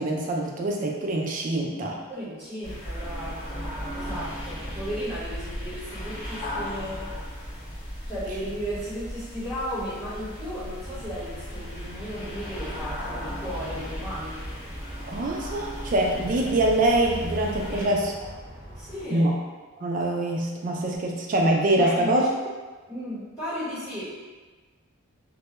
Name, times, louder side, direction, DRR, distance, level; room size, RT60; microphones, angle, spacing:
voice 1, 0.0-2.0 15.1-18.1 19.1-19.3 19.8-22.2, right 1 dB, 35° right, 0 dB, 0.3 m, -24 dB
voice 2, 1.9-7.1 8.0-14.5 17.7-17.9 18.7-19.3 21.7-22.3 22.9-24.0, equal, 5° right, -15 dB, 1.0 m, -35 dB
sound 1, 2.6-17.9, equal, 20° left, 0.6 m, -36 dB
sound 2, 10.8-19.1, equal, 40° left, 0.9 m, -42 dB
2.1 x 2.1 x 2.9 m, 1.3 s
head